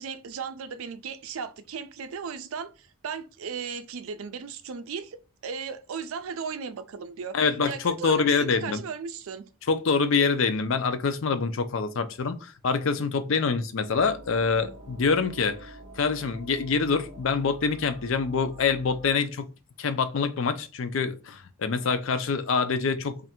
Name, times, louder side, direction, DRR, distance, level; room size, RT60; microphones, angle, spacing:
voice 1, 0.0-7.4 7.6-9.5, right 6 dB, 75° right, 0.4 m, -36 dB
voice 2, 7.3-8.8 9.7-19.5 19.8-23.2, left 5 dB, 65° left, 0.5 m, -25 dB
sound 1, 13.9-19.1, right 1 dB, 35° right, 0.8 m, -47 dB
3.2 x 2.5 x 4.3 m
head